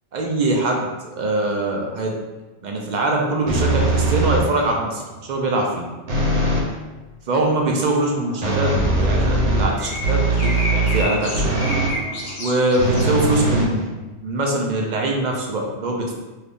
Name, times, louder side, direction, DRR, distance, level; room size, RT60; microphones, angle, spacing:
voice 1, 0.1-2.1 2.6-5.9 7.3-11.7 12.4-13.8 14.2-16.1, right 2 dB, 60° right, 0 dB, 0.5 m, -23 dB
sound 1, 3.5-4.7 6.1-6.7 8.4-12.0 12.8-14.3, right 2 dB, 85° right, 1.1 m, -21 dB
sound 2, 8.0-13.4, left 1 dB, 75° left, 1.1 m, -32 dB
3.4 x 2.7 x 2.5 m, 1.2 s
omnidirectional pair, 1.2 m